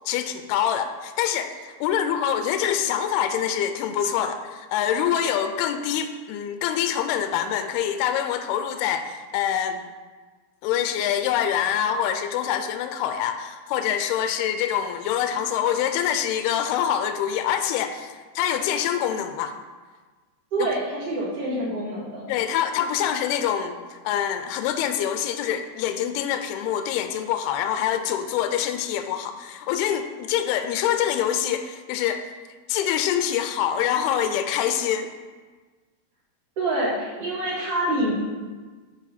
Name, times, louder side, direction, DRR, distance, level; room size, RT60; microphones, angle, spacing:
voice 1, 0.1-1.6 1.8-9.8 10.6-19.5 20.6-20.7 22.3-32.2 32.7-35.1, left 9 dB, 85° left, 8 dB, 2.4 m, -25 dB
voice 2, 20.5-22.3 36.6-38.1, right 1 dB, 40° right, -8 dB, 2.8 m, -26 dB
8.2 x 5.5 x 4.1 m, 1.4 s
omnidirectional pair, 4.7 m